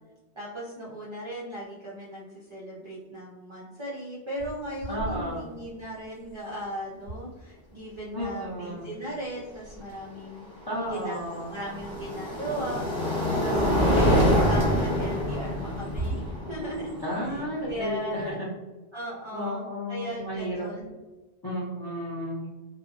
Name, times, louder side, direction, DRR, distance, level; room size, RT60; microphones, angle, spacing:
voice 1, 0.4-10.4 10.9-11.2 11.5-12.8 13.4-16.2 16.5-17.0 17.3-18.4 18.9-20.9, right 1 dB, 50° right, -6 dB, 0.3 m, -37 dB
sound 1, 4.4-4.5 4.8-5.2 7.1-7.2 10.2-18.3, equal, 15° right, 0.7 m, -26 dB
voice 2, 4.9-5.4 8.1-8.9 10.7-11.6 13.9-14.5 17.0-18.5 19.3-20.7 21.4-22.5, equal, 35° left, -6 dB, 0.4 m, -32 dB
2.7 x 2.0 x 2.4 m, 1.2 s
omnidirectional pair, 1.2 m